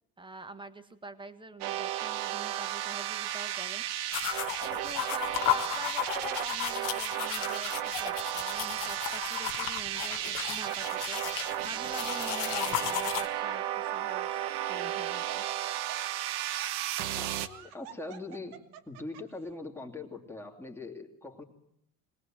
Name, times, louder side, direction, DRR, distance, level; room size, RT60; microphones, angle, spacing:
voice 1, 0.2-4.2 4.6-15.5, right 3 dB, 10° right, 10 dB, 1.6 m, -45 dB
sound 1, 1.6-17.5, right 12 dB, 60° right, 1.3 m, -34 dB
sound 2, 4.1-13.3, left 15 dB, 70° left, 1.7 m, -35 dB
Laughter, 11.4-11.9 12.5-12.6 13.8-19.4, right 9 dB, 90° right, 1.7 m, -51 dB
voice 2, 17.2-18.6 18.9-21.4, left 3 dB, 5° left, 1 dB, 2.9 m, -42 dB
21.5 x 18.5 x 7.7 m, 0.72 s
supercardioid pair, 110°, 44 cm